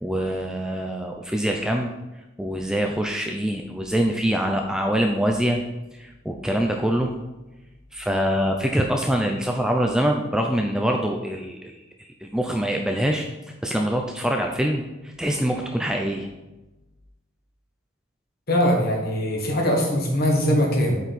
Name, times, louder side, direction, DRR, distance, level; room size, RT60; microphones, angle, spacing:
voice 1, 0.0-1.9 2.4-5.6 6.0-7.1 7.9-11.8 12.2-13.2 13.6-16.3, equal, 5° right, 2 dB, 0.4 m, -24 dB
voice 2, 18.5-21.0, equal, 45° left, 1 dB, 1.4 m, -21 dB
7.9 x 4.5 x 4.1 m, 1.0 s
head